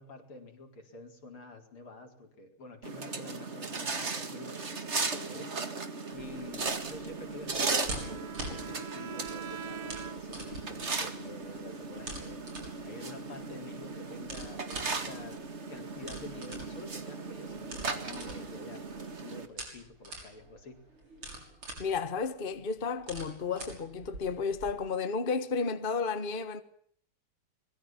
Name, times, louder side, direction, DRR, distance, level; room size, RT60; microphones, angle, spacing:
voice 1, 0.0-5.5 6.1-12.4 12.8-15.4 15.7-18.9 19.2-20.8, left 2 dB, 80° left, 4.9 m, -48 dB
sound 1, 2.8-19.5, right 4 dB, 35° right, 2.1 m, -37 dB
sound 2, 6.1-24.7, right 1 dB, 80° right, 7.2 m, -46 dB
Bowed string instrument, 7.5-10.5, right 7 dB, 50° right, 1.5 m, -44 dB
voice 2, 21.8-26.6, left 5 dB, 30° left, 1.4 m, -32 dB
24.5 x 22.0 x 7.3 m
omnidirectional pair, 2.3 m